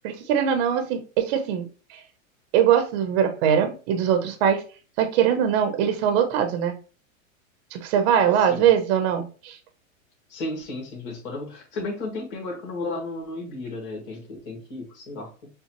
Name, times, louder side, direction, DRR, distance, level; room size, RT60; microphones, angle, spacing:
voice 1, 0.0-2.0 2.5-4.6 5.0-6.8 7.7-9.6, right 8 dB, 50° right, 7 dB, 0.9 m, -22 dB
voice 2, 8.3-8.7 10.3-15.5, left 2 dB, 55° left, -1 dB, 1.9 m, -34 dB
6.6 x 2.3 x 3.1 m, 0.36 s
hypercardioid pair, 120°, 40 cm